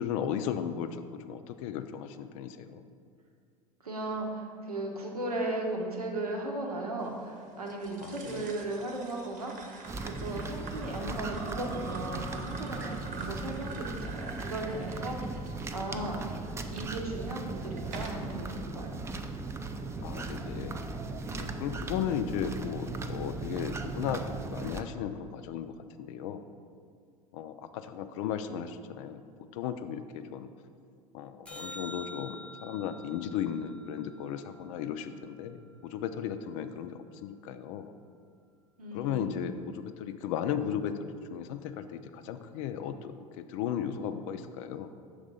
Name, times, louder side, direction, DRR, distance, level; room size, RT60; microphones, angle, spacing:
voice 1, 0.0-2.8 8.0-8.5 20.0-20.8 21.3-25.7 26.0-26.4 27.3-29.2 29.5-30.5 31.1-35.6 35.8-38.0 38.9-44.9, left 9 dB, 60° left, 10 dB, 0.4 m, -35 dB
voice 2, 3.8-9.8 10.0-15.4 15.7-16.2 16.7-18.9 38.8-39.3, right 2 dB, 90° right, 0 dB, 0.9 m, -36 dB
sound 1, 7.7-16.8 17.4-18.3, right 3 dB, 45° right, 0.9 m, -45 dB
sound 2, 9.9-24.8, right 3 dB, 15° right, 0.4 m, -38 dB
sound 3, 31.5-35.9 42.5-42.6, left 1 dB, 5° left, 0.7 m, -48 dB
6.4 x 3.3 x 5.1 m, 2.3 s
hypercardioid pair, 75°, 19 cm